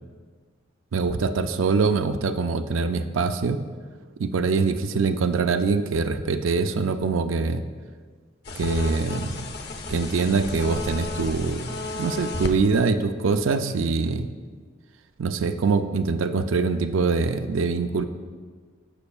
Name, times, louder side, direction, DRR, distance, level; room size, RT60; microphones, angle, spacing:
voice 1, 0.9-3.6 4.2-7.6 8.6-9.3 9.9-11.7 12.0-14.3 15.2-18.1, right 4 dB, 90° right, 9 dB, 0.4 m, -24 dB
sound 1, 8.4-12.6, left 2 dB, 55° left, 0.7 m, -33 dB
13.5 x 5.3 x 2.4 m, 1.5 s
head